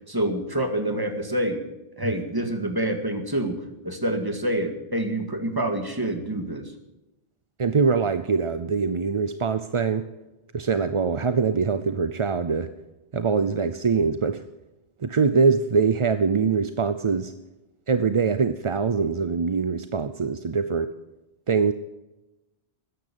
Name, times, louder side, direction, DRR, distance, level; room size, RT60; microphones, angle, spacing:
voice 1, 0.1-1.6 2.0-3.6 3.8-6.7, right 1 dB, 20° right, 5 dB, 2.0 m, -27 dB
voice 2, 7.6-10.0 10.5-12.7 13.1-14.4 15.0-17.3 17.9-20.9 21.5-21.7, right 5 dB, 35° right, 11 dB, 0.5 m, -23 dB
13.5 x 10.5 x 8.6 m, 0.98 s
omnidirectional pair, 1.2 m